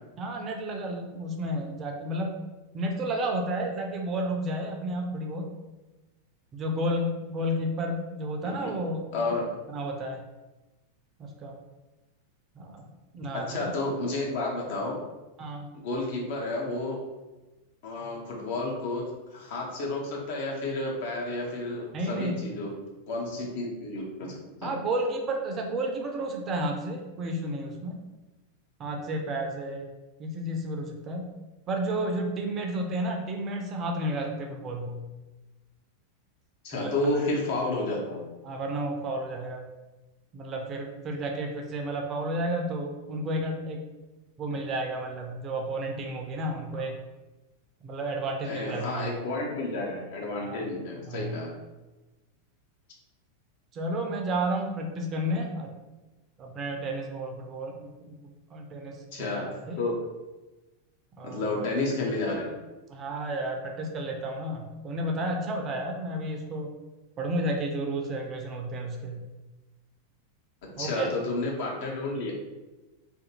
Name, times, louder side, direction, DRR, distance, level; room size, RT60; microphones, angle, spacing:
voice 1, 0.2-2.4 2.7-5.5 6.5-9.1 9.7-10.2 11.2-11.6 12.6-13.5 15.4-15.7 21.9-22.3 24.6-28.0 28.8-29.9 30.2-31.3 31.7-35.1 36.7-36.9 38.4-39.7 40.3-43.8 44.4-47.0 47.8-49.1 50.4-50.7 51.1-51.4 53.7-55.7 56.4-59.8 61.2-61.6 62.9-66.7 67.2-69.2 70.8-71.1, right 1 dB, 30° right, 2 dB, 0.4 m, -32 dB
voice 2, 9.1-9.4 13.3-15.0 15.7-17.0 17.8-22.7 23.1-24.7 36.6-38.2 48.4-51.5 59.1-59.5 59.8-59.9 61.2-62.5 70.8-72.3, left 2 dB, 50° left, -1 dB, 0.7 m, -31 dB
2.5 x 2.2 x 2.8 m, 1.1 s
figure-of-eight pair, 90°, 0 cm